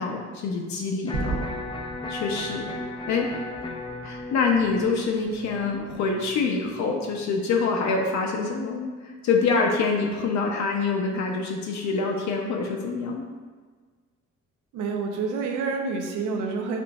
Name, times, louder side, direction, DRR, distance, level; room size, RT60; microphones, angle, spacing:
voice 1, 0.0-1.4 2.1-3.3 4.0-13.3, left 4 dB, 65° left, 0 dB, 0.5 m, -26 dB
Electric guitar, 1.1-7.1, left 2 dB, 15° left, 0.3 m, -37 dB
Gunshot gunfire / Fireworks / Boom, 1.1-5.9, right 3 dB, 60° right, 1.0 m, -37 dB
voice 2, 14.7-16.8, right 4 dB, 80° right, 2 dB, 0.6 m, -28 dB
5.0 x 2.5 x 2.3 m, 1.5 s
cardioid pair, 90°, 30 cm